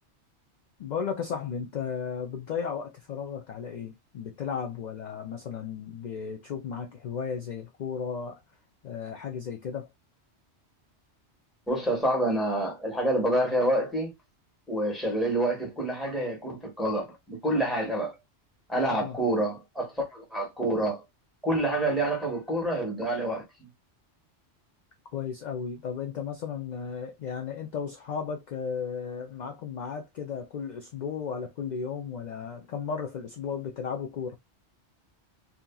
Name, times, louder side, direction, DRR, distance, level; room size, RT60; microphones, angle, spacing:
voice 1, 0.8-8.4 8.8-9.9 18.9-19.2 25.1-34.4, left 6 dB, 60° left, 0.5 m, -34 dB
voice 2, 11.7-14.1 14.7-18.2 18.7-21.0 21.4-23.7, right 1 dB, ahead, 1.1 m, -27 dB
2.8 x 2.5 x 2.2 m
omnidirectional pair, 1.2 m